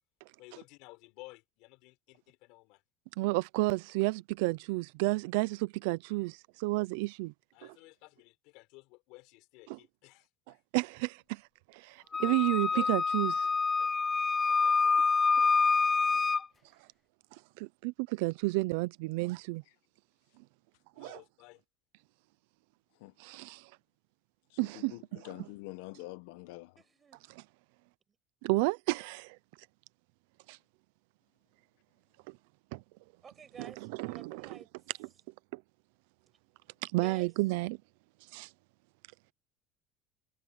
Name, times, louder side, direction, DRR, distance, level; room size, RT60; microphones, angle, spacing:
voice 1, 0.4-2.8 7.5-10.6 12.2-12.9 13.8-13.9 14.4-15.0 15.3-15.7 20.9-21.6 25.3-25.4, left 24 dB, 65° left, 4.8 m, -55 dB
voice 2, 3.2-7.3 9.7-9.8 10.7-11.4 11.7-13.5 17.6-19.6 21.0-21.2 23.2-23.7 24.6-25.2 27.3-27.4 28.4-29.4 30.5-30.6 32.3-32.4 32.7-32.8 33.6-34.6 35.0-35.1 35.5-35.6 36.8-37.8 38.3-38.5, right 23 dB, 80° right, 0.5 m, -32 dB
Wind instrument woodwind instrument, 12.1-16.4, left 4 dB, 15° left, 0.5 m, -27 dB
voice 3, 24.5-26.8, left 19 dB, 85° left, 1.1 m, -46 dB
voice 4, 26.8-27.2 33.2-33.8 34.1-34.7 37.0-37.3, right 6 dB, 20° right, 6.9 m, -51 dB
cardioid pair, 160°, 0 cm